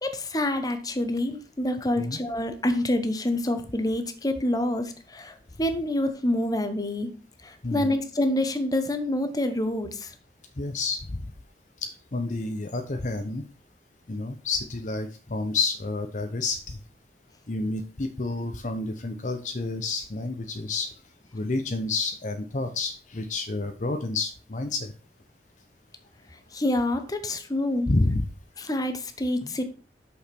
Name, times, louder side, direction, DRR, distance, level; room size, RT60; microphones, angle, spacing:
voice 1, 0.0-7.1 7.4-10.1 26.5-27.9 28.6-29.6, left 1 dB, 20° left, 8 dB, 1.0 m, -27 dB
voice 2, 1.8-2.2 7.6-7.9 10.6-11.2 11.8-13.4 14.1-16.8 17.5-20.9 21.3-24.9 27.9-28.3, left 3 dB, 45° left, 6 dB, 0.7 m, -29 dB
6.5 x 5.8 x 5.9 m, 0.37 s
head